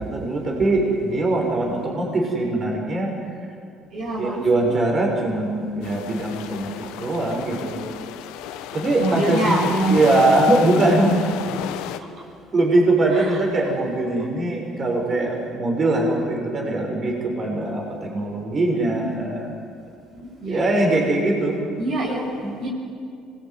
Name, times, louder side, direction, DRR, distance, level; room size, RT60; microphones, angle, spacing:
voice 1, 0.0-3.1 4.2-7.8 8.7-9.6 9.9-11.3 12.5-19.5 20.4-21.6 22.4-22.5, right 2 dB, 40° right, 0 dB, 6.7 m, -21 dB
voice 2, 3.9-4.7 9.0-10.1 13.1-13.4 20.2-20.8 21.8-22.3 22.6-22.7, right 2 dB, 60° right, -2 dB, 6.4 m, -25 dB
sound 1, 5.8-12.0, left 11 dB, 85° left, 1.4 m, -33 dB
25.5 x 21.0 x 9.6 m, 2.4 s
supercardioid pair, 90°, 0 cm